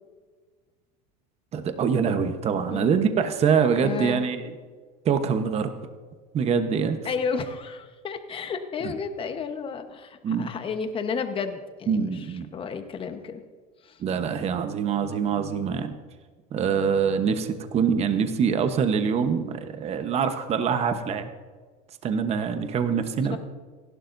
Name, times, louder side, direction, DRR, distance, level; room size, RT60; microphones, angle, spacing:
voice 1, 1.5-4.5 5.0-5.7 6.3-7.0 8.8-8.9 10.2-10.5 11.9-12.5 14.0-16.0 16.5-21.3 22.0-23.4, right 6 dB, 35° right, 8 dB, 1.1 m, -24 dB
voice 2, 3.8-4.2 7.0-12.2 12.5-13.4 13.8-14.0 23.3-23.4, left 5 dB, 30° left, 7 dB, 1.2 m, -32 dB
28.5 x 11.5 x 2.7 m, 1.5 s
supercardioid pair, 125°, 19 cm